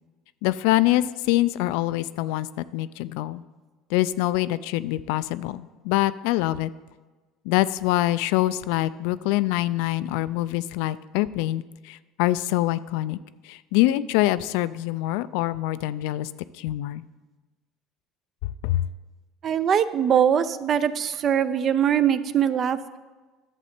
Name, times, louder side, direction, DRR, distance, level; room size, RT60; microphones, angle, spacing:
voice 1, 0.4-2.5 2.7-3.4 3.9-6.7 7.5-13.2 13.4-16.3 16.6-17.0 18.6-18.9, left 16 dB, 80° left, 16 dB, 0.3 m, -24 dB
voice 2, 19.4-23.0, right 8 dB, 35° right, 14 dB, 0.4 m, -22 dB
11.0 x 7.3 x 4.4 m, 1.3 s
cardioid pair, 150°, 0 cm